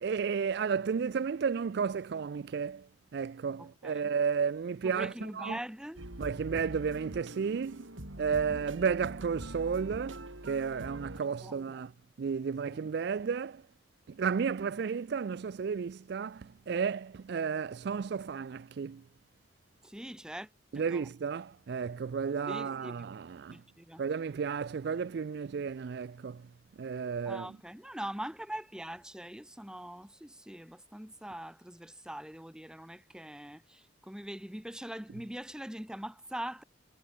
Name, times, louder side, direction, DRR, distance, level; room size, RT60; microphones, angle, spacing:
voice 1, 0.0-5.6 6.2-7.9 8.2-11.9 12.2-13.7 14.1-19.0 20.7-23.6 24.0-26.5 26.8-27.5, right 6 dB, 55° right, 0.4 m, -33 dB
voice 2, 3.6-4.0 4.8-6.1 11.4-11.8 12.7-12.8 19.8-21.1 22.5-23.1 23.5-24.0 27.2-36.6, right 1 dB, 5° right, 0.9 m, -43 dB
sound 1, 6.0-11.2, right 1 dB, 90° right, 4.0 m, -44 dB
head